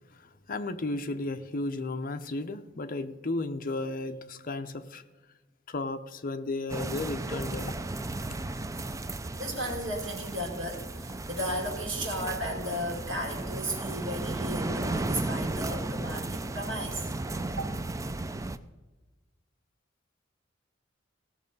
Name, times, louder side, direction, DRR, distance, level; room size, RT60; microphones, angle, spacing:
voice 1, 0.5-5.0 5.7-7.7, left 2 dB, 45° left, 7 dB, 0.7 m, -34 dB
sound 1, 6.7-18.6, right 2 dB, 15° right, 0.4 m, -34 dB
voice 2, 9.4-17.1 17.5-17.7, equal, 75° right, 0 dB, 2.8 m, -35 dB
16.5 x 6.3 x 5.4 m, 1.2 s
head